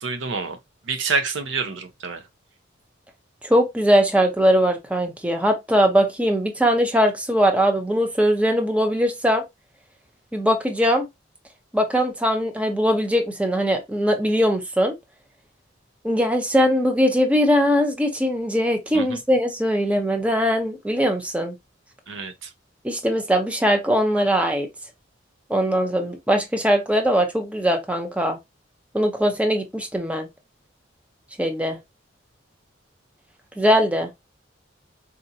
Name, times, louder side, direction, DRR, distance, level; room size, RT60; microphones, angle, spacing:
voice 1, 0.0-0.6 0.8-2.2 18.9-19.2 22.1-22.5, right 4 dB, 90° right, 0.7 m, -27 dB
voice 2, 3.4-9.4 10.3-11.1 11.7-15.0 16.0-21.5 22.8-24.7 25.5-28.4 28.9-30.3 31.4-31.8 33.6-34.1, equal, 5° right, 0.6 m, -21 dB
4.2 x 2.6 x 2.7 m
head